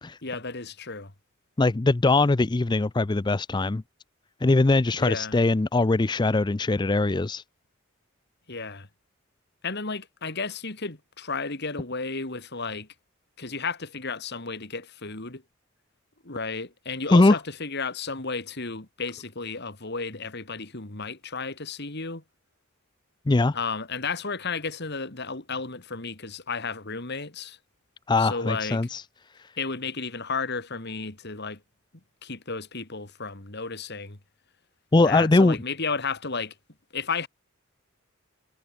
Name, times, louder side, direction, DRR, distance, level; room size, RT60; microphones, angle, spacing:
voice 1, 0.2-1.1 5.0-5.4 8.5-8.9 9.6-12.9 13.4-15.4 16.2-22.2 23.5-27.6 28.2-28.9 29.6-31.6 32.2-34.2 35.0-36.5 36.9-37.3, left 4 dB, 50° left, 2.6 m, -33 dB
voice 2, 1.6-3.8 4.4-7.4 17.1-17.4 23.3-23.5 28.1-29.0 29.4-29.5 34.9-35.6, left 2 dB, 20° left, 0.4 m, -21 dB
head